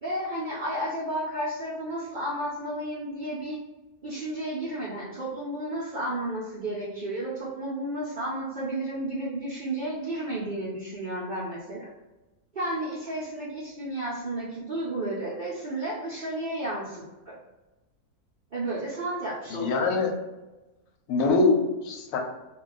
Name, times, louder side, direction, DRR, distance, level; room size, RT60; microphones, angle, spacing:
voice 1, 0.0-3.6 4.0-11.9 12.5-17.4 18.5-19.7, right 1 dB, 60° right, -7 dB, 0.5 m, -32 dB
voice 2, 19.5-20.1 21.1-22.2, left 3 dB, 70° left, 3 dB, 0.9 m, -23 dB
2.3 x 2.2 x 3.8 m, 1.1 s
omnidirectional pair, 1.6 m